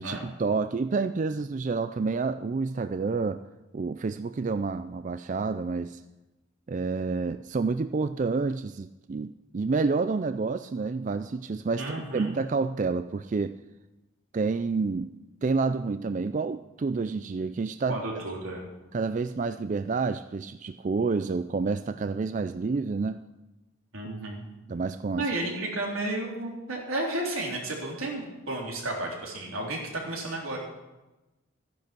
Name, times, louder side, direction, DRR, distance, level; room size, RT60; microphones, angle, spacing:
voice 1, 0.0-3.4 3.7-6.0 6.7-13.6 14.3-15.1 15.4-18.0 18.9-23.2 24.7-25.3, right 4 dB, 35° right, 10 dB, 0.3 m, -29 dB
voice 2, 11.8-12.3 17.9-18.7 23.9-24.4 25.2-30.6, right 2 dB, 90° right, -1 dB, 3.6 m, -32 dB
13.5 x 10.5 x 6.1 m, 1.0 s
head